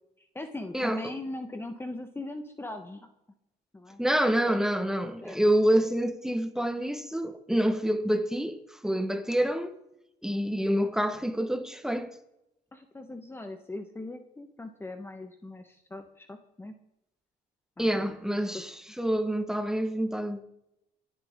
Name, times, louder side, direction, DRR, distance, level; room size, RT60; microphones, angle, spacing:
voice 1, 0.2-3.1 3.7-4.0 4.5-4.6 5.2-5.4 12.7-16.7 17.8-18.2 18.5-18.6, left 2 dB, 15° left, 1.2 m, -40 dB
voice 2, 4.0-8.6 8.8-9.7 10.2-12.1 17.8-20.4, equal, 5° right, 1.3 m, -27 dB
26.5 x 10.5 x 3.7 m
cardioid pair, 110°, 17 cm